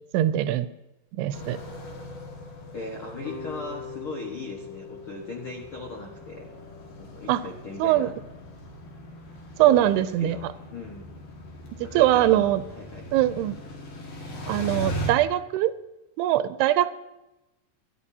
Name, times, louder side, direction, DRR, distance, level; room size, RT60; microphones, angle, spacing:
voice 1, 0.1-0.7 1.2-1.6 7.3-7.4 7.8-8.1 9.6-10.5 11.8-12.6 13.1-13.6 14.5-15.7 16.2-16.9, right 13 dB, 80° right, 12 dB, 2.5 m, -22 dB
sound 1, 1.3-15.1, equal, 60° left, 3.4 m, -40 dB
voice 2, 2.7-6.5 7.0-8.1 9.7-11.1 11.8-13.0, left 3 dB, 85° left, 1 dB, 1.1 m, -38 dB
sound 2, 3.2-8.3, left 6 dB, 35° left, 1.3 m, -43 dB
24.0 x 11.5 x 2.8 m, 0.98 s
omnidirectional pair, 4.9 m